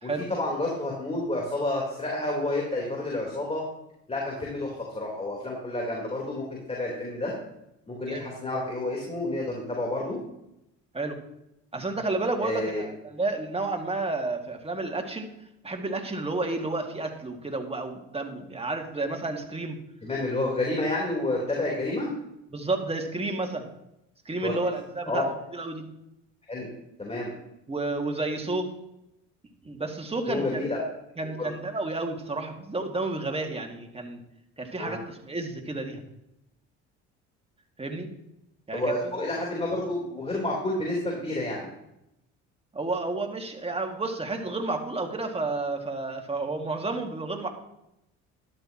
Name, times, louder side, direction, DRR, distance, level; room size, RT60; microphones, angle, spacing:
voice 1, 0.0-3.6 4.1-7.3 7.9-10.2 12.4-12.8 20.0-22.1 24.4-24.5 25.1-25.2 26.5-26.7 27.0-27.3 30.3-30.8 31.4-31.5 34.8-35.0 38.7-41.7, left 2 dB, 20° left, -2 dB, 4.0 m, -29 dB
voice 2, 11.7-15.3 15.6-19.8 22.5-23.7 24.3-25.2 25.5-25.8 27.7-28.7 29.6-30.7 31.2-34.2 34.6-36.0 37.8-38.1 38.7-38.9 42.7-47.5, right 2 dB, 20° right, 3 dB, 2.3 m, -31 dB
13.0 x 11.5 x 3.0 m, 0.83 s
supercardioid pair, 75°, 32 cm